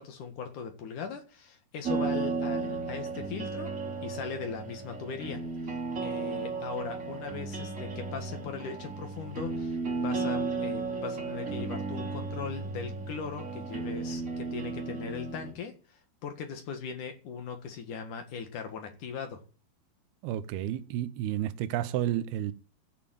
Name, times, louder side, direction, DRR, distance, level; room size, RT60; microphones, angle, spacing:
voice 1, 0.0-3.7 4.0-19.4, left 6 dB, 55° left, 2.9 m, -39 dB
sound 1, 1.8-15.5, right 4 dB, 20° right, 2.9 m, -34 dB
voice 2, 20.2-22.5, right 12 dB, 75° right, 2.8 m, -31 dB
14.0 x 7.4 x 8.7 m
omnidirectional pair, 4.7 m